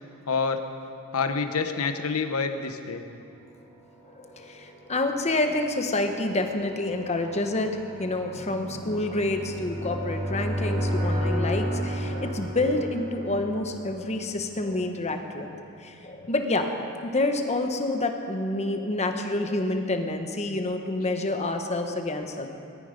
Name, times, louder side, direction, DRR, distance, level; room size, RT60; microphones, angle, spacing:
voice 1, 0.3-0.6 1.1-3.0 8.3-9.0 21.0-21.1, left 5 dB, 75° left, 7 dB, 1.1 m, -28 dB
sound 1, 4.0-14.8, equal, 30° right, 4.3 m, -33 dB
voice 2, 4.1-15.5 15.8-22.5, left 2 dB, 30° left, 5 dB, 1.1 m, -28 dB
20.0 x 13.0 x 5.2 m, 2.7 s
head